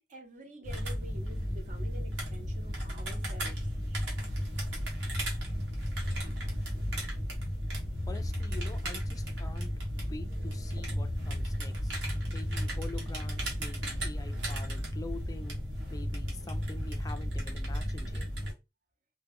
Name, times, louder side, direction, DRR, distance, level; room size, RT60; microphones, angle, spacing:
voice 1, 0.0-4.2, equal, 45° right, 0.7 m, -49 dB
sound 1, 0.6-18.5, equal, 85° right, 1.0 m, -34 dB
voice 2, 8.1-11.9 12.3-15.6 15.9-18.3, left 3 dB, 20° left, 0.3 m, -46 dB
2.2 x 2.2 x 3.5 m
head